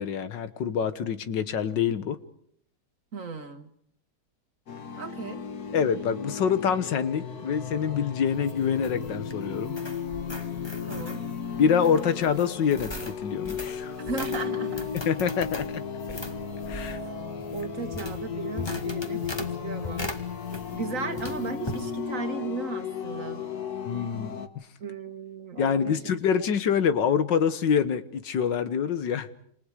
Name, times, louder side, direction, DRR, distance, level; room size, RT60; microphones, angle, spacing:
voice 1, 0.0-2.2 5.7-9.8 11.6-14.0 15.1-15.7 16.1-16.2 16.7-17.0 23.9-24.4 25.6-29.3, left 7 dB, 80° left, 12 dB, 1.9 m, -26 dB
voice 2, 3.1-3.7 5.0-5.4 10.9-11.2 14.1-14.9 17.5-20.1 20.7-23.4 24.8-26.0 26.4-26.5, right 4 dB, 45° right, 8 dB, 2.1 m, -36 dB
sound 1, 4.7-24.5, left 6 dB, 60° left, 1.9 m, -35 dB
sound 2, 8.3-20.9 21.2-21.8, left 1 dB, 15° left, 1.6 m, -40 dB
28.0 x 27.5 x 5.0 m, 0.64 s
omnidirectional pair, 1.9 m